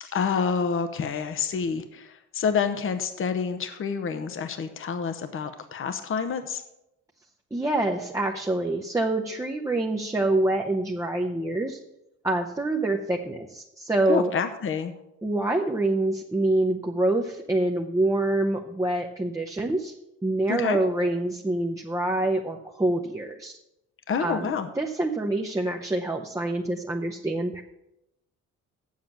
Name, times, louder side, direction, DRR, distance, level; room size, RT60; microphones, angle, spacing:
voice 1, 0.0-6.6 14.1-14.9 20.5-20.8 24.1-24.7, left 6 dB, 45° left, 8 dB, 0.8 m, -28 dB
voice 2, 7.5-11.8 12.2-14.3 15.2-19.9 20.2-23.6 24.2-27.6, right 2 dB, 10° right, 1 dB, 0.8 m, -26 dB
7.4 x 7.3 x 7.3 m, 0.88 s
cardioid pair, 90°, 30 cm